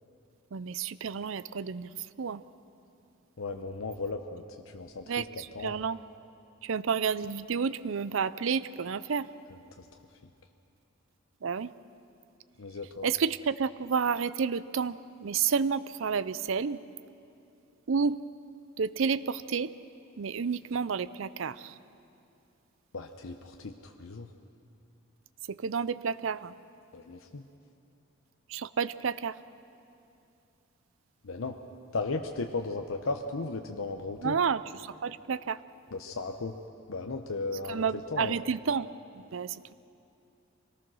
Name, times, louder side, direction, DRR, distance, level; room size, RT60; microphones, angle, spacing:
voice 1, 0.5-1.9 2.2-2.4 5.1-6.0 6.6-9.3 11.4-11.7 13.0-16.8 17.9-18.2 18.8-19.7 20.2-21.7 25.5-26.5 28.5-29.4 34.2-35.6 37.7-38.9 39.3-39.6, right 6 dB, 70° right, 16 dB, 0.5 m, -30 dB
voice 2, 3.4-5.3 5.5-5.8 9.8-9.9 12.6-13.1 22.9-24.3 26.9-27.4 31.2-31.6 31.9-34.4 35.9-36.6 36.9-38.3, left 3 dB, 85° left, 4 dB, 0.8 m, -36 dB
24.5 x 18.5 x 6.2 m, 2.7 s
head